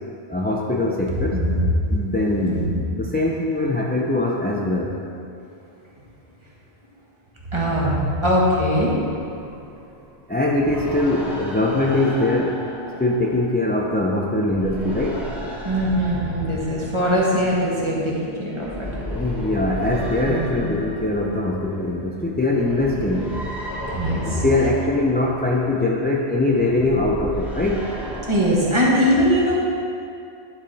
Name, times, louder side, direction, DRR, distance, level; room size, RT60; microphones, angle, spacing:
voice 1, 0.3-1.4 1.9-5.0 10.3-12.6 13.0-15.2 19.0-23.3 24.2-27.8, left 2 dB, 15° left, -2 dB, 0.3 m, -22 dB
voice 2, 1.3-1.6 2.4-2.8 7.5-9.0 15.6-18.9 20.3-20.5 23.9-24.4 28.3-29.6, equal, 25° right, -5 dB, 1.4 m, -21 dB
sound 1, 8.7-14.1 14.4-28.6, equal, ahead, 1.1 m, -34 dB
10.5 x 4.7 x 4.1 m, 2.5 s
omnidirectional pair, 1.1 m